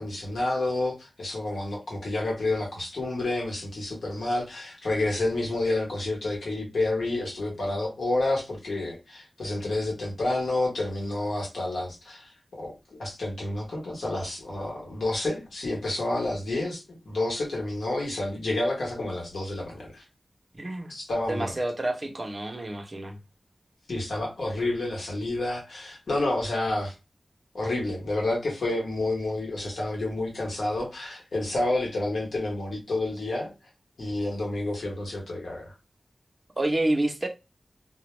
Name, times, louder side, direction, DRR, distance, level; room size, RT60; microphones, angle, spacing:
voice 1, 0.0-20.0 20.9-21.6 23.9-26.9 27.5-33.5 34.0-35.7, left 2 dB, 90° left, 1.0 m, -29 dB
voice 2, 20.5-20.9 21.3-23.2 36.6-37.3, right 1 dB, 40° right, 0.6 m, -28 dB
2.2 x 2.1 x 3.0 m
cardioid pair, 50°, 0 cm